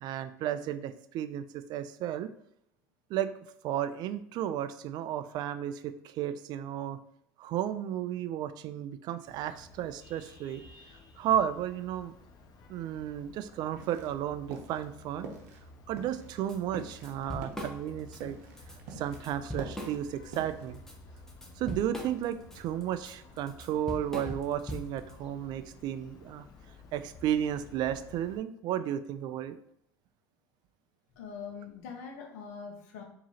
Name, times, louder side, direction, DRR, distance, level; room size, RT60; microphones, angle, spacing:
voice 1, 0.0-2.3 3.1-3.3 3.6-7.0 7.4-10.6 11.2-12.1 12.7-15.3 15.9-18.4 19.0-20.8 21.6-26.5 26.9-29.6, right 10 dB, 55° right, 12 dB, 0.3 m, -33 dB
Vehicle horn car horn honking, 9.3-28.4, left 2 dB, 50° left, 0.6 m, -53 dB
sound 1, 13.7-14.2 14.5-14.8 15.2-15.7 16.0-19.2 19.5-20.8, right 4 dB, 80° right, 0.8 m, -46 dB
Drum kit / Drum, 16.5-16.6 16.9-18.2 18.6-18.8 19.1-20.4 20.7-25.1, equal, 5° left, 0.8 m, -40 dB
voice 2, 31.2-33.0, left 6 dB, 85° left, 2 dB, 0.9 m, -43 dB
4.7 x 2.9 x 2.8 m, 0.74 s
supercardioid pair, 105°, 9 cm